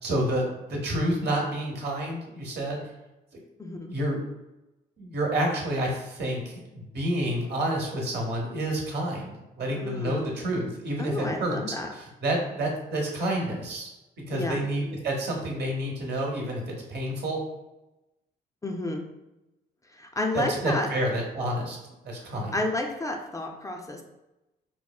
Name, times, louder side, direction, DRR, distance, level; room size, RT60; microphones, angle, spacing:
voice 1, 0.0-2.8 3.9-4.2 5.0-11.6 11.9-13.9 14.3-17.4 20.3-21.8 22.0-22.6, right 1 dB, 65° right, -1 dB, 0.9 m, -29 dB
voice 2, 3.6-3.9 9.7-10.3 11.0-11.9 14.3-14.6 18.6-19.0 19.9-20.9 22.2-22.3 22.5-24.0, left 1 dB, 15° left, 1 dB, 0.4 m, -31 dB
3.6 x 2.0 x 2.3 m, 0.98 s
cardioid pair, 80°, 19 cm